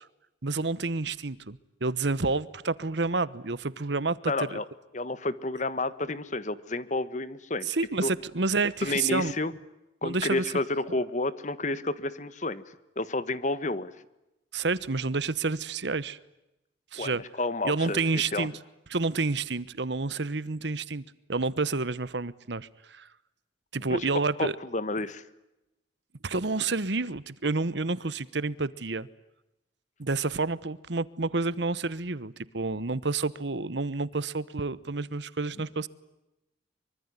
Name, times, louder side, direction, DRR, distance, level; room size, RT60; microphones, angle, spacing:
voice 1, 0.4-4.6 7.7-9.3 10.0-10.4 14.5-16.2 16.9-17.2 17.6-18.6 18.9-21.0 21.3-23.1 23.7-24.6 26.2-29.1 30.0-35.9, right 3 dB, 65° right, 1.1 m, -29 dB
voice 2, 4.3-4.6 4.9-7.7 8.0-8.1 8.8-9.5 10.0-12.6 13.0-13.9 17.0-18.0 18.3-18.5 23.9-24.0 24.4-25.2, left 2 dB, 40° left, 1.4 m, -30 dB
24.5 x 24.5 x 9.5 m
head